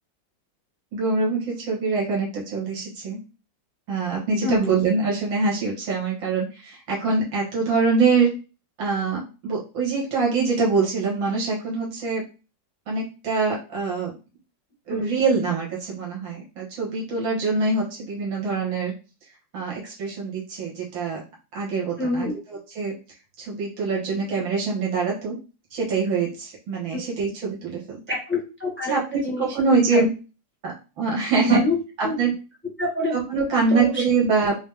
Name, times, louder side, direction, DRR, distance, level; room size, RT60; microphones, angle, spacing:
voice 1, 0.9-3.2 3.9-8.3 8.8-12.2 12.9-14.2 14.9-18.9 19.5-21.2 21.5-23.0 23.4-25.4 25.7-28.0 28.9-30.1 30.6-31.6 32.0-32.3 33.1-34.6, right 4 dB, 85° right, -4 dB, 2.1 m, -24 dB
voice 2, 4.4-4.7 14.9-15.1 22.0-22.4 26.9-27.0 28.1-29.5 29.9-30.0 31.4-31.8 32.0-32.1 32.8-33.1 33.7-34.0, left 1 dB, 10° left, -2 dB, 0.7 m, -26 dB
5.0 x 2.0 x 3.4 m, 0.32 s
omnidirectional pair, 2.1 m